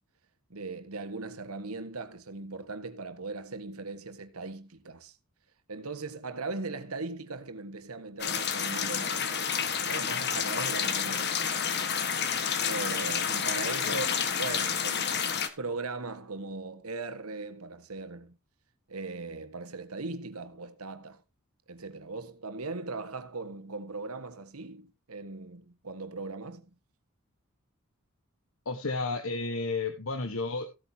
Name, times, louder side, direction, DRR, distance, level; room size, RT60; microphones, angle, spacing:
voice 1, 0.5-5.2 5.7-11.3 11.6-14.1 14.4-15.2 15.6-18.3 18.9-21.2 21.7-26.7, right 3 dB, 90° right, 1.6 m, -39 dB
sound 1, 8.2-15.5, left 7 dB, 50° left, 1.5 m, -29 dB
voice 2, 28.6-30.7, left 3 dB, 70° left, 1.4 m, -32 dB
16.0 x 8.5 x 2.9 m
head